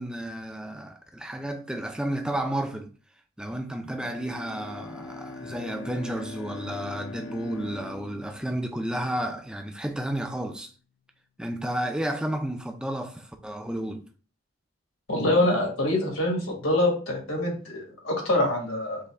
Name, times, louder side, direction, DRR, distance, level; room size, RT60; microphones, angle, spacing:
voice 1, 0.0-2.9 3.4-10.7 11.4-14.1, right 1 dB, 5° right, 0.4 m, -32 dB
Bowed string instrument, 4.0-9.5, left 3 dB, 60° left, 0.6 m, -42 dB
voice 2, 15.1-19.0, left 1 dB, 80° left, 1.7 m, -25 dB
5.4 x 2.2 x 3.4 m
head